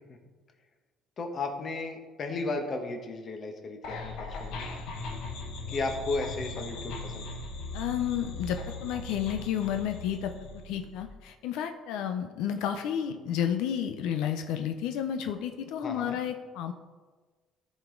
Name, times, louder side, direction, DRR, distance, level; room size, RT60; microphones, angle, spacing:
voice 1, 1.2-4.7 5.7-7.3 15.8-16.2, left 3 dB, 35° left, 4 dB, 1.2 m, -34 dB
sound 1, 3.8-11.0, left 2 dB, 70° left, 1.3 m, -39 dB
voice 2, 7.7-10.3 10.6-16.7, left 9 dB, 90° left, 6 dB, 0.6 m, -31 dB
14.0 x 5.2 x 3.8 m, 1.4 s
cardioid pair, 145°, 0 cm